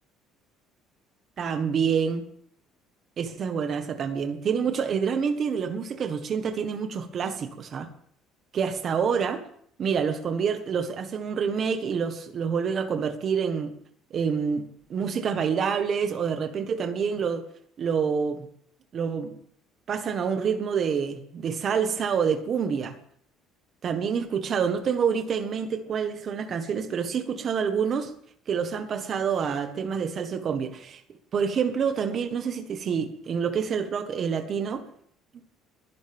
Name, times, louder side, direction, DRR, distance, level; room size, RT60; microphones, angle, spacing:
voice 1, 1.4-2.3 3.2-7.9 8.5-9.5 9.8-13.7 14.1-17.4 17.8-18.5 18.9-19.4 19.9-22.9 23.8-28.1 28.5-31.0 31.3-34.9, right 6 dB, 35° right, 1.5 m, -27 dB
22.5 x 11.5 x 3.6 m
cardioid pair, 160°, 0 cm